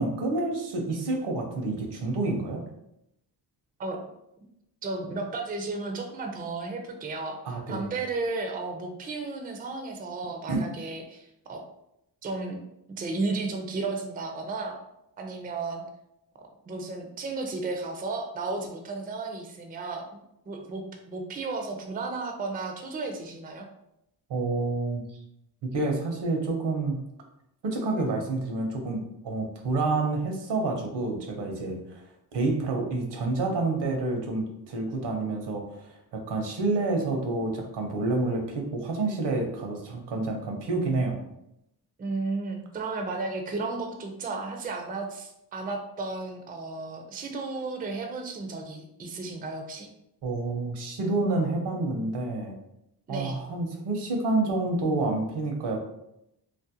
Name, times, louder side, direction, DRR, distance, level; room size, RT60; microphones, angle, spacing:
voice 1, 0.0-2.6 7.4-7.9 10.5-10.6 24.3-25.2 25.6-27.1 27.6-32.0 32.3-41.2 50.2-52.6 53.1-55.8, right 2 dB, 70° right, 3 dB, 0.7 m, -28 dB
voice 2, 4.8-7.4 7.7-11.6 12.2-12.6 13.0-14.8 15.2-15.8 16.7-20.2 20.5-23.7 42.0-49.9 53.1-53.4, right 3 dB, 20° right, 3 dB, 0.4 m, -33 dB
2.5 x 2.0 x 2.7 m, 0.82 s
cardioid pair, 65°, 43 cm